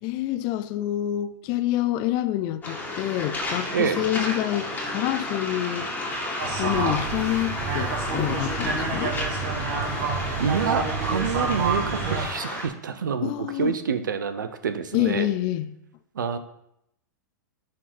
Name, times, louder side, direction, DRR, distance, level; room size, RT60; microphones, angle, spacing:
voice 1, 0.0-5.9 6.6-9.2 13.2-13.7 14.9-15.7, left 13 dB, 45° left, 12 dB, 0.6 m, -27 dB
Waves surf, 2.6-12.7, left 2 dB, 15° left, 1.9 m, -32 dB
sound 1, 6.4-12.2, right 4 dB, 50° right, 1.9 m, -28 dB
voice 2, 10.4-15.3 16.1-16.4, right 6 dB, 80° right, 11 dB, 0.7 m, -27 dB
10.0 x 3.8 x 4.4 m, 0.79 s
hypercardioid pair, 105°, 10 cm